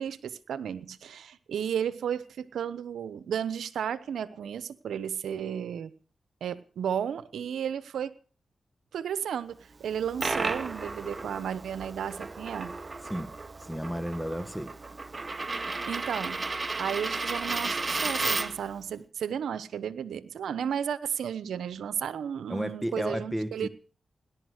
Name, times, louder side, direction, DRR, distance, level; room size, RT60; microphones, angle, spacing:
voice 1, 0.0-5.9 6.4-8.1 8.9-12.7 15.9-16.4 16.8-23.7, right 8 dB, 90° right, 1.0 m, -33 dB
Coin (dropping), 9.8-18.7, right 3 dB, 40° right, 1.0 m, -33 dB
voice 2, 13.6-14.8 22.5-23.7, equal, 5° left, 1.7 m, -32 dB
17.5 x 11.5 x 6.5 m
cardioid pair, 50°, 0 cm